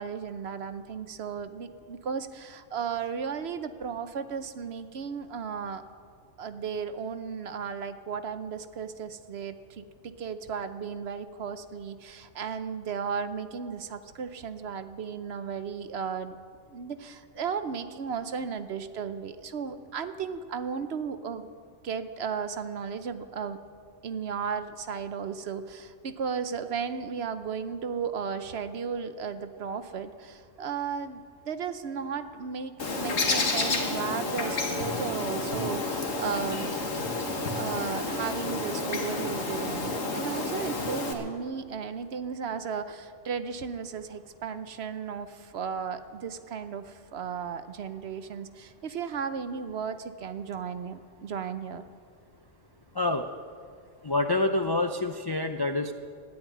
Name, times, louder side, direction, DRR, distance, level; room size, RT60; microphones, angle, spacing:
voice 1, 0.0-5.8 6.4-16.4 16.7-21.5 21.8-23.6 24.0-36.7 37.5-51.8, right 6 dB, 60° right, 10 dB, 0.9 m, -35 dB
Bird, 32.8-41.1, left 3 dB, 90° left, 1.8 m, -30 dB
voice 2, 52.9-53.3 54.0-55.9, left 2 dB, 35° left, 5 dB, 0.3 m, -27 dB
13.5 x 10.5 x 9.2 m, 2.1 s
omnidirectional pair, 1.3 m